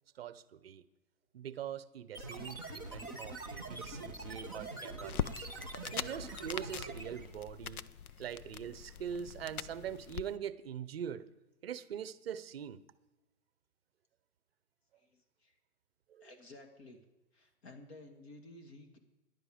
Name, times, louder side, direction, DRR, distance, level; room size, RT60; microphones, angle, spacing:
voice 1, 0.1-0.8 1.3-5.5 5.9-7.9 8.2-11.2 11.6-12.8 16.1-16.3, right 9 dB, 45° right, 15 dB, 0.7 m, -43 dB
sound 1, 2.1-7.3, right 2 dB, 15° left, 0.5 m, -44 dB
sound 2, 5.1-10.2, left 9 dB, 75° left, 0.7 m, -42 dB
voice 2, 15.0-15.6 16.2-17.0 17.3-19.0, left 2 dB, 45° left, 5 dB, 2.0 m, -54 dB
14.5 x 10.5 x 5.0 m, 1.0 s
hypercardioid pair, 165°, 44 cm